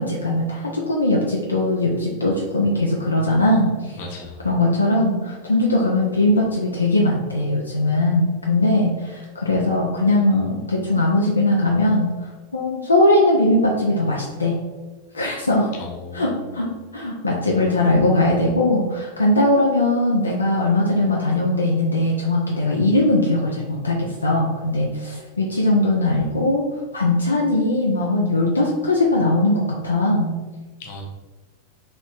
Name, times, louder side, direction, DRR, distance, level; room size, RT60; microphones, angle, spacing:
voice 1, 0.0-4.0 4.4-14.6 15.1-15.7 16.1-26.7 26.9-30.3, left 1 dB, 80° left, -2 dB, 0.4 m, -20 dB
voice 2, 3.9-4.5 15.7-16.5 30.8-31.0, left 2 dB, 50° left, 0 dB, 0.6 m, -36 dB
3.0 x 3.0 x 2.4 m, 1.3 s
figure-of-eight pair, 90°, 0 cm